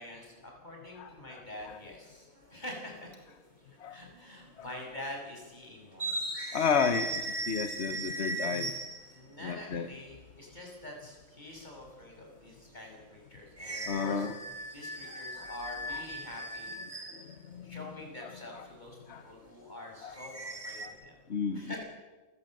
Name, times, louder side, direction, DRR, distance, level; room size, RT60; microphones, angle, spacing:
voice 1, 0.0-3.1 3.8-6.2 9.1-14.3 14.7-16.8 17.6-21.2 21.5-21.8, left 1 dB, 30° left, 0 dB, 6.7 m, -46 dB
voice 2, 1.0-1.4 3.8-4.0 6.5-8.7 9.4-9.9 13.9-14.3 15.1-15.5 15.9-16.0 17.5-17.8 18.5-18.6 19.1-19.2 20.0-20.1 20.8-20.9 21.3-21.7, left 6 dB, 55° left, 9 dB, 1.4 m, -32 dB
sound 1, 1.6-1.9 3.0-3.1 4.1-4.5 4.8-4.9 5.9-9.2 13.6-17.3 20.1-20.9, right 2 dB, 30° right, 3.1 m, -38 dB
28.5 x 15.0 x 7.8 m, 1.2 s
omnidirectional pair, 1.4 m